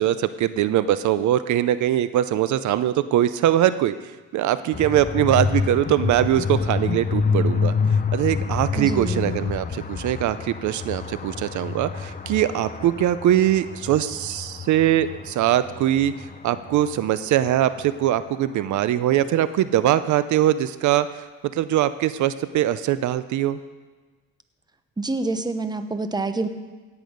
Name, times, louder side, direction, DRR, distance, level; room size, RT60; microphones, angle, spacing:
voice 1, 0.0-3.9 4.3-7.7 8.1-16.1 16.4-21.2 21.5-23.6, right 12 dB, 75° right, 14 dB, 0.6 m, -22 dB
sound 1, 4.7-18.6, left 5 dB, 30° left, 0.8 m, -28 dB
voice 2, 8.8-9.3 25.0-26.5, right 3 dB, 15° right, 10 dB, 0.9 m, -27 dB
17.0 x 8.3 x 5.2 m, 1.3 s
cardioid pair, 90°, 30 cm